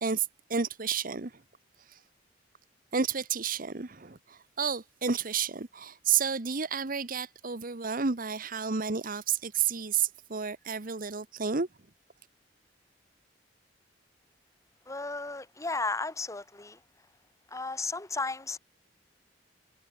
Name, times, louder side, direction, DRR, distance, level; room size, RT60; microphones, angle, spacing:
voice 1, 0.0-1.4 1.9-2.0 2.9-11.7, right 6 dB, 50° right, 1.2 m, -31 dB
voice 2, 14.9-16.8 17.5-18.6, left 3 dB, 15° left, 1.3 m, -34 dB
head